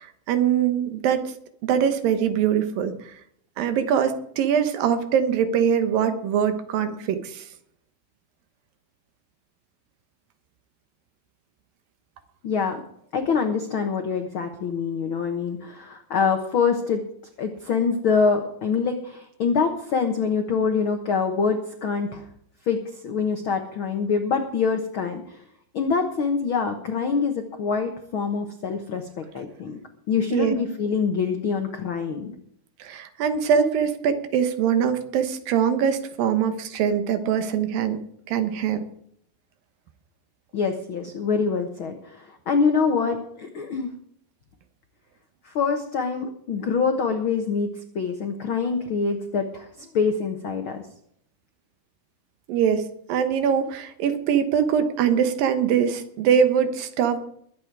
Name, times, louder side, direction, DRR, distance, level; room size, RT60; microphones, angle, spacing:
voice 1, 0.0-1.3 1.6-3.0 3.6-7.4 30.3-30.5 32.8-38.0 38.3-38.8 52.5-57.2, right 8 dB, 75° right, 9 dB, 2.9 m, -23 dB
voice 2, 12.4-12.8 13.1-17.0 17.4-22.2 22.7-22.8 23.0-25.4 25.7-29.8 30.1-32.3 40.5-43.9 45.4-47.7 47.9-49.7 49.9-50.8, left 5 dB, 85° left, 5 dB, 1.1 m, -25 dB
21.5 x 8.6 x 4.7 m, 0.67 s
omnidirectional pair, 4.2 m